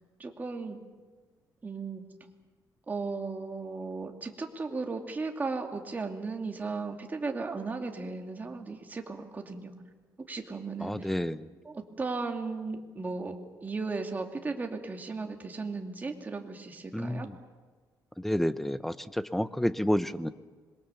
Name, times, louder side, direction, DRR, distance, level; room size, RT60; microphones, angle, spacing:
voice 1, 0.2-0.8 1.6-2.0 2.9-9.7 10.3-11.1 11.6-17.3, right 4 dB, 25° right, 3 dB, 2.5 m, -36 dB
voice 2, 10.8-11.5 16.9-17.3 18.2-20.3, equal, 5° left, 13 dB, 0.8 m, -30 dB
26.0 x 22.5 x 7.1 m, 1.4 s
cardioid pair, 125°, 7 cm